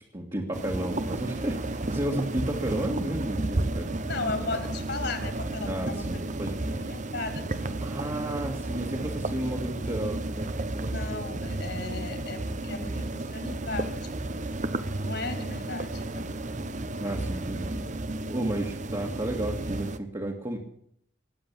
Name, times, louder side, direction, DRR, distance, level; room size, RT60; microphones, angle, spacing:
voice 1, 0.1-3.9 5.6-6.8 7.8-11.3 17.0-17.8 18.3-20.6, right 1 dB, 25° right, -1 dB, 2.0 m, -33 dB
sound 1, 0.5-20.0, right 2 dB, 40° right, 0.9 m, -32 dB
voice 2, 4.1-6.2 6.5-7.8 10.8-14.4 15.0-16.3, left 3 dB, 60° left, 6 dB, 3.3 m, -36 dB
20.5 x 7.7 x 8.8 m, 0.68 s
head